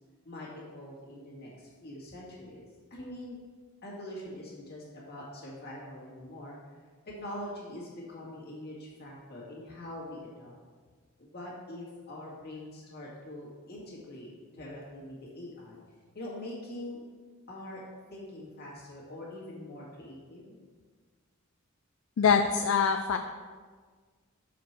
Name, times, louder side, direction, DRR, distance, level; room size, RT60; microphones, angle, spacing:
voice 1, 0.2-2.6 2.9-3.4 3.8-6.6 7.1-10.6 11.2-15.8 16.1-17.0 17.5-17.8 18.1-20.6, left 1 dB, 50° left, -5 dB, 2.0 m, -43 dB
voice 2, 22.2-23.2, left 6 dB, 65° left, 5 dB, 0.4 m, -24 dB
6.6 x 5.1 x 4.5 m, 1.5 s
head